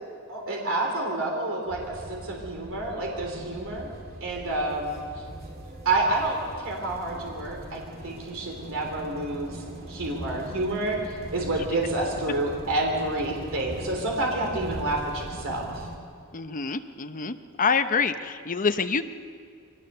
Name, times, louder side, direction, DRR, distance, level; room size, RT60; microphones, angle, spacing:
voice 1, 0.3-3.9 4.2-5.0 5.8-15.9, right 2 dB, 65° right, 0 dB, 3.5 m, -29 dB
sound 1, 1.7-16.0, right 1 dB, 45° right, 2.3 m, -40 dB
voice 2, 16.3-19.1, left 5 dB, 40° left, 8 dB, 0.8 m, -26 dB
23.0 x 18.5 x 6.8 m, 2.2 s
head